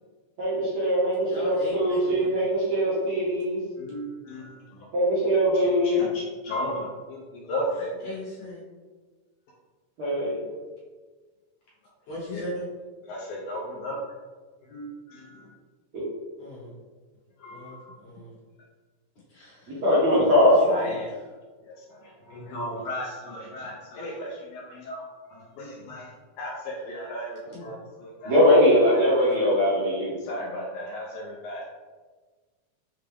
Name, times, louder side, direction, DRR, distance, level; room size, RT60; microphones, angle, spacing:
voice 1, 0.4-3.6 4.9-6.0 10.0-10.4 15.9-16.1 19.7-20.6 28.2-30.1, equal, 75° right, -9 dB, 1.2 m, -21 dB
voice 2, 1.2-2.4 8.0-8.6 12.1-12.7 16.4-16.8 17.5-18.3 19.3-19.8 20.3-21.0 27.4-27.7, equal, 65° left, -7 dB, 2.3 m, -38 dB
voice 3, 3.8-4.9 5.5-7.9 10.2-10.3 12.3-12.5 13.1-14.0 14.6-15.5 17.4-18.0 20.7-21.1 21.6-25.0 25.3-28.4 28.9-29.5 30.2-31.7, equal, 80° left, -3 dB, 1.9 m, -36 dB
5.9 x 2.3 x 3.4 m, 1.4 s
omnidirectional pair, 3.9 m